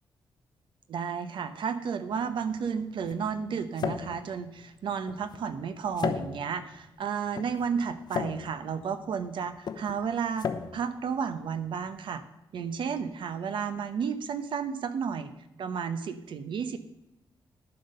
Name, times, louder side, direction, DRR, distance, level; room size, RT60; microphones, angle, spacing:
voice 1, 0.9-12.2 12.5-15.3 15.6-16.8, right 6 dB, 75° right, 11 dB, 0.9 m, -32 dB
sound 1, 2.1-11.9, left 6 dB, 55° left, 0.8 m, -37 dB
11.0 x 7.7 x 5.5 m, 0.91 s
wide cardioid pair, 130°, 8 cm